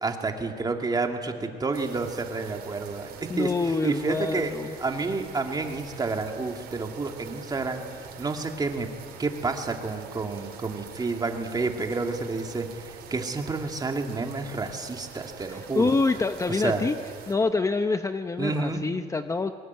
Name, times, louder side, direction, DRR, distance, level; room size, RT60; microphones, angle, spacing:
voice 1, 0.0-4.5 4.8-7.8 8.2-8.9 9.2-16.0 16.5-16.8 18.4-18.8, right 3 dB, 25° right, 3 dB, 2.6 m, -29 dB
sound 1, 1.7-17.3, right 7 dB, 70° right, 4.1 m, -45 dB
voice 2, 3.3-4.7 15.5-17.0 17.3-19.5, left 3 dB, 20° left, 8 dB, 0.8 m, -26 dB
22.0 x 19.5 x 9.7 m, 2.1 s
cardioid pair, 110°, 17 cm